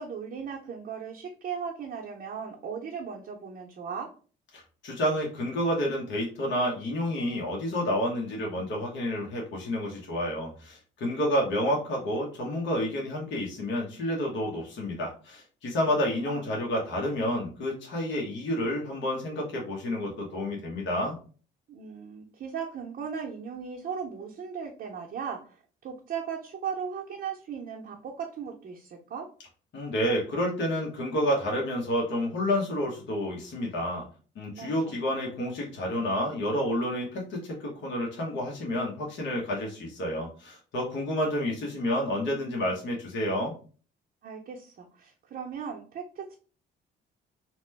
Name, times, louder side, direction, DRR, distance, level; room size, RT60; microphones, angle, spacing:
voice 1, 0.0-4.1 15.8-16.5 21.7-29.3 34.6-35.0 44.2-46.3, right 6 dB, 50° right, -2 dB, 0.6 m, -37 dB
voice 2, 4.5-21.2 29.7-34.0 34.4-43.5, equal, 65° left, -1 dB, 1.0 m, -29 dB
2.9 x 2.1 x 3.3 m, 0.39 s
cardioid pair, 80°, 21 cm